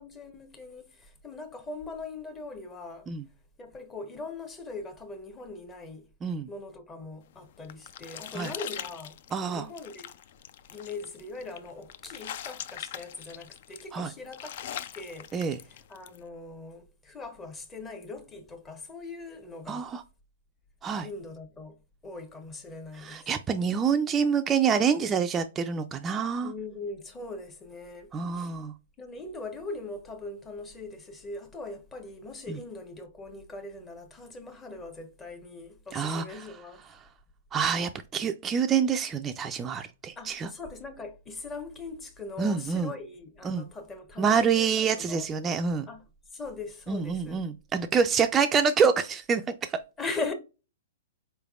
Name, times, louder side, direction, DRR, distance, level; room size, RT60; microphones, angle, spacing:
voice 1, 0.0-3.1 3.6-6.0 6.5-10.1 10.7-14.7 14.9-19.9 21.0-21.8 22.0-23.3 26.4-28.5 29.0-36.8 40.2-45.3 45.9-46.1 46.3-47.4 50.0-50.3, left 3 dB, 20° left, 0.8 m, -41 dB
sound 1, 7.3-16.2, left 10 dB, 55° left, 0.4 m, -42 dB
voice 2, 9.3-9.7 13.9-14.1 15.3-15.6 19.7-20.0 20.8-21.1 23.0-26.5 28.1-28.7 32.5-32.6 35.9-36.5 37.5-40.5 42.4-42.9 43.4-43.6 44.2-45.9 46.9-49.4 49.7-49.8, right 6 dB, 20° right, 0.3 m, -26 dB
4.4 x 3.3 x 2.3 m
hypercardioid pair, 120°, 0 cm